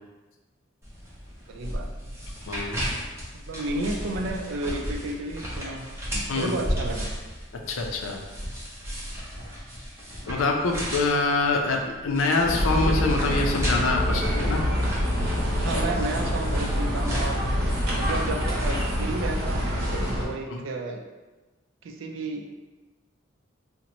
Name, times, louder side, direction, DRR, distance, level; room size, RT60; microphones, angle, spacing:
sound 1, 0.8-20.1, equal, 15° right, 0.6 m, -35 dB
voice 1, 1.5-2.2 3.3-7.1 9.4-9.5 15.6-17.4 17.9-21.1 21.8-22.5, right 2 dB, 75° right, 3 dB, 0.4 m, -32 dB
voice 2, 2.5-2.9 6.3-6.6 7.7-8.2 10.3-14.6 15.7-15.9 20.5-20.6, left 3 dB, 85° left, 2 dB, 0.5 m, -25 dB
sound 2, 12.4-20.3, equal, 50° right, 0.8 m, -26 dB
2.9 x 2.1 x 3.9 m, 1.2 s
head